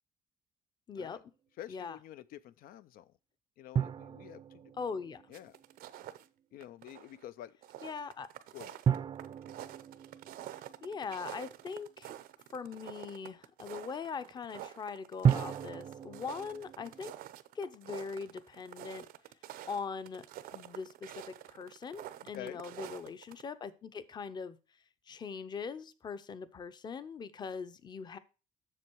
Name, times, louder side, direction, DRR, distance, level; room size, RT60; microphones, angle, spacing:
voice 1, 0.9-1.2 1.7-2.0 4.8-5.2 7.8-8.3 10.8-12.1 12.5-17.1 17.5-19.0 19.6-20.2 20.5-24.6 25.1-28.2, left 5 dB, 30° left, 0.6 m, -41 dB
voice 2, 1.6-3.1 3.6-4.7 5.3-5.6 6.5-7.6 8.5-8.8 22.3-22.6, left 12 dB, 80° left, 0.4 m, -48 dB
sound 1, 3.8-6.0 8.9-11.8 15.2-17.1, right 8 dB, 30° right, 0.4 m, -34 dB
sound 2, 5.3-6.3 6.6-7.2 7.5-23.4, right 12 dB, 90° right, 0.7 m, -48 dB
7.6 x 6.9 x 4.6 m
cardioid pair, 165°, 15 cm